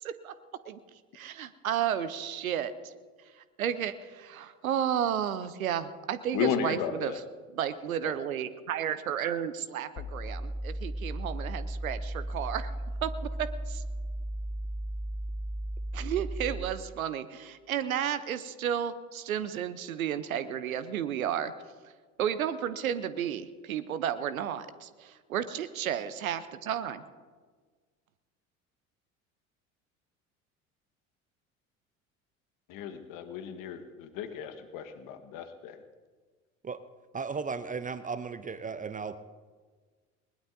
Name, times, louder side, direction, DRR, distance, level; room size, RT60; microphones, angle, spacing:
voice 1, 0.0-0.3 0.6-0.8 1.1-2.9 3.6-7.1 7.5-12.7 13.0-13.8 15.9-21.5 22.2-27.0, right 9 dB, 80° right, 13 dB, 0.8 m, -32 dB
voice 2, 6.3-7.2 8.0-8.1 32.7-35.8, left 8 dB, 50° left, 8 dB, 1.5 m, -34 dB
sound 1, 10.0-16.8, right 1 dB, 35° left, 1.2 m, -35 dB
voice 3, 37.1-39.2, right 5 dB, 20° right, 13 dB, 0.7 m, -35 dB
20.5 x 20.5 x 2.7 m, 1.5 s
figure-of-eight pair, 65°, 41 cm